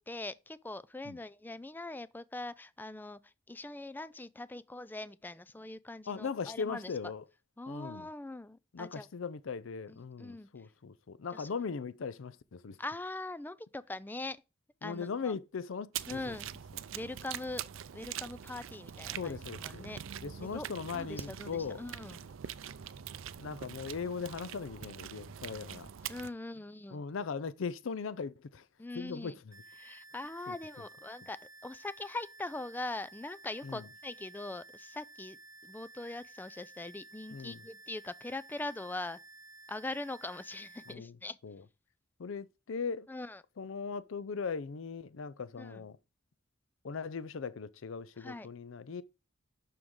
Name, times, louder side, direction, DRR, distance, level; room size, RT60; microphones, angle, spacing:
voice 1, 0.0-6.9 7.6-9.1 9.9-10.5 11.3-11.5 12.8-14.4 14.8-15.3 16.1-16.5 16.9-17.6 17.9-20.0 20.4-20.7 20.9-22.2 26.1-27.0 28.8-29.3 29.8-35.4 35.6-39.2 39.7-41.4 43.1-43.4 45.6-45.8 48.2-48.5, left 2 dB, 10° left, 0.3 m, -42 dB
voice 2, 6.1-7.2 7.7-8.1 8.7-12.8 14.8-16.4 19.2-19.9 20.2-21.8 23.4-25.9 26.9-28.7 28.9-29.6 30.5-30.6 33.6-33.9 37.3-37.6 40.9-41.1 41.4-41.6 42.2-43.1 43.6-46.0 46.8-49.0, left 5 dB, 70° left, 0.5 m, -39 dB
sound 1, 15.9-26.3, right 9 dB, 75° right, 0.5 m, -43 dB
sound 2, 29.5-40.9, right 2 dB, 20° right, 0.7 m, -54 dB
11.5 x 4.6 x 3.7 m
head